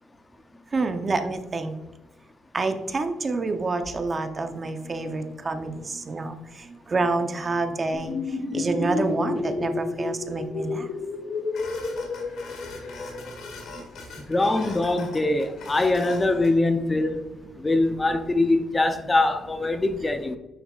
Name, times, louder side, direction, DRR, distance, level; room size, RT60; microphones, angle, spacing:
voice 1, 0.7-1.7 2.5-6.3 6.9-8.1 8.5-10.9, right 3 dB, 35° right, 0.8 m, -27 dB
sound 1, 7.9-13.3, left 3 dB, 55° left, 1.4 m, -30 dB
sound 2, 11.5-16.5, left 3 dB, 75° left, 2.1 m, -41 dB
voice 2, 14.3-17.2 17.6-20.4, left 2 dB, 20° left, 0.7 m, -23 dB
9.5 x 6.8 x 2.4 m
cardioid pair, 90°, 0 cm